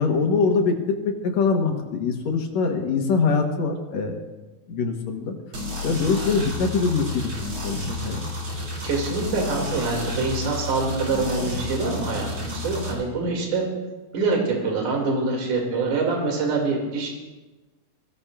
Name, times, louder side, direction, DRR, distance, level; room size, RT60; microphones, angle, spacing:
voice 1, 0.0-4.2 4.7-5.3 5.8-7.3 7.6-8.3, left 4 dB, 60° left, 3 dB, 2.2 m, -23 dB
sound 1, 5.5-12.9, left 1 dB, 35° right, 3.2 m, -31 dB
voice 2, 8.8-13.7 14.1-17.1, right 3 dB, 60° right, -1 dB, 3.8 m, -25 dB
22.0 x 17.0 x 2.5 m, 1.2 s
omnidirectional pair, 4.0 m